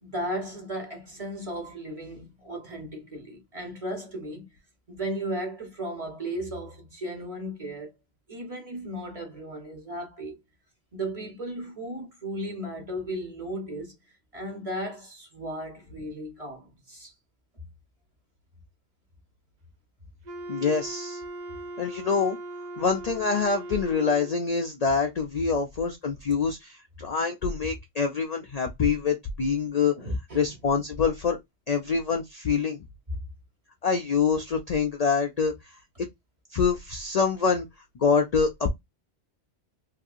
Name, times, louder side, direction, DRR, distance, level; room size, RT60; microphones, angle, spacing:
voice 1, 0.0-4.5 4.9-7.9 8.3-10.4 10.9-13.9 14.3-17.1 30.0-30.5, right 1 dB, 30° right, 1.0 m, -35 dB
Wind instrument woodwind instrument, 20.2-24.5, right 2 dB, 50° right, 0.5 m, -39 dB
voice 2, 20.5-21.2 21.8-22.4 22.8-29.9 30.3-31.4 31.7-32.8 33.8-35.5 36.0-36.1 36.5-37.7 38.0-38.7, left 5 dB, 55° left, 0.4 m, -25 dB
3.0 x 2.7 x 2.4 m
omnidirectional pair, 1.2 m